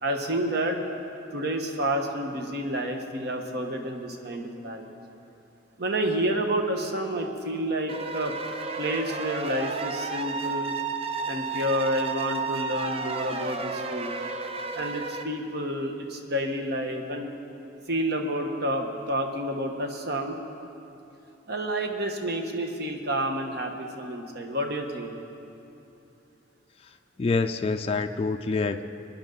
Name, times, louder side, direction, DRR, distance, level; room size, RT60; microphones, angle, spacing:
voice 1, 0.0-0.8 1.3-4.9 5.8-8.3 8.8-10.8 11.3-14.1 14.7-17.3 17.9-20.4 21.5-25.1, right 1 dB, 55° right, 3 dB, 1.2 m, -29 dB
sound 1, 7.9-15.2, right 4 dB, 30° right, 0.5 m, -32 dB
voice 2, 27.2-28.8, left 3 dB, 30° left, 6 dB, 0.3 m, -26 dB
21.5 x 10.5 x 3.9 m, 2.8 s
head